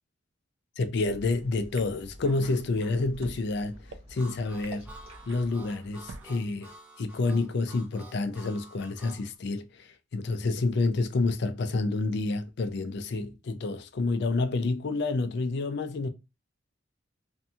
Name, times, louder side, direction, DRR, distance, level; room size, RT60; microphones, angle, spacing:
voice 1, 0.8-4.9 5.3-6.7 7.0-16.1, left 3 dB, 60° left, 0.5 m, -29 dB
sound 1, 0.9-6.7, right 1 dB, 30° right, 0.9 m, -50 dB
sound 2, 1.8-1.9 2.2-3.4 3.9-4.0 4.6-4.7 5.1-6.4, right 3 dB, 85° right, 0.4 m, -46 dB
Harmonica, 4.2-9.2, right 1 dB, 10° right, 0.7 m, -50 dB
2.8 x 2.6 x 2.3 m
head